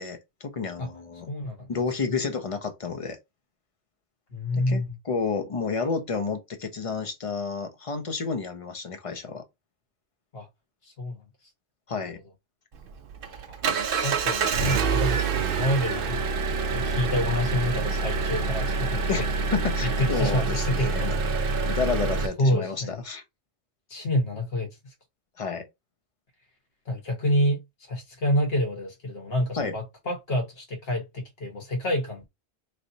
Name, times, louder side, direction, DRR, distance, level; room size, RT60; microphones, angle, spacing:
voice 1, 0.0-1.3 1.7-3.2 4.5-9.4 11.9-12.2 19.1-21.2 21.4-23.2 25.4-25.7 29.6-29.7, left 5 dB, 35° left, 0.7 m, -30 dB
voice 2, 1.3-1.7 4.3-5.0 10.3-10.5 10.8-11.2 11.9-12.1 13.5-13.6 14.0-16.3 16.7-19.1 19.8-21.5 22.4-23.0 23.9-24.9 26.8-32.3, left 1 dB, 65° left, 1.5 m, -28 dB
Engine, 12.7-22.3, right 4 dB, 60° right, 0.8 m, -26 dB
4.0 x 3.2 x 2.7 m
omnidirectional pair, 1.1 m